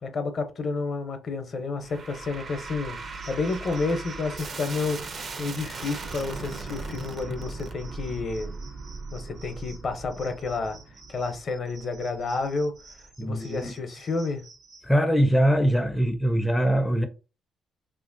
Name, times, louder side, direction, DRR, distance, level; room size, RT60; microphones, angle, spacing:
voice 1, 0.0-3.0 3.3-5.0 5.4-8.5 9.1-10.8 11.1-12.8 13.2-14.4, left 3 dB, 50° left, 0.6 m, -30 dB
sound 1, 1.8-13.1, right 3 dB, 50° right, 0.5 m, -39 dB
sound 2, 3.1-14.9, right 4 dB, 65° right, 0.9 m, -52 dB
voice 2, 13.2-13.7 14.8-17.1, equal, 5° left, 0.4 m, -22 dB
3.0 x 2.5 x 2.5 m
cardioid pair, 90°, 0 cm